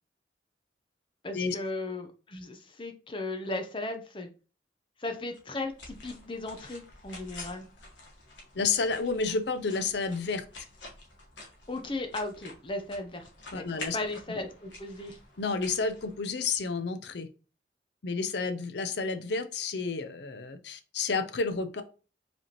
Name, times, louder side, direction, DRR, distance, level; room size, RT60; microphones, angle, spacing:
voice 1, 1.2-4.3 5.0-7.6 11.7-15.2, left 2 dB, 25° left, 6 dB, 0.7 m, -36 dB
sound 1, 5.3-16.7, left 2 dB, 80° left, 1.3 m, -48 dB
voice 2, 8.5-10.4 13.5-14.0 15.4-17.3 18.0-21.8, left 4 dB, 65° left, 10 dB, 0.6 m, -30 dB
4.8 x 3.4 x 2.9 m, 0.34 s
head